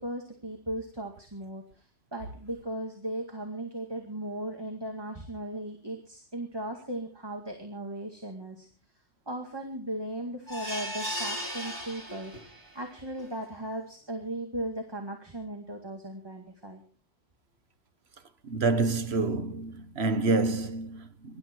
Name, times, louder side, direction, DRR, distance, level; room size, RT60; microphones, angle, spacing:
voice 1, 0.0-8.7 9.3-16.8, right 1 dB, 20° right, 2.2 m, -37 dB
sound 1, 10.5-12.7 13.2-13.3 13.6-13.7, equal, 90° right, 3.9 m, -36 dB
voice 2, 18.4-21.4, right 3 dB, 70° right, 1.5 m, -28 dB
24.0 x 12.0 x 4.6 m
omnidirectional pair, 1.1 m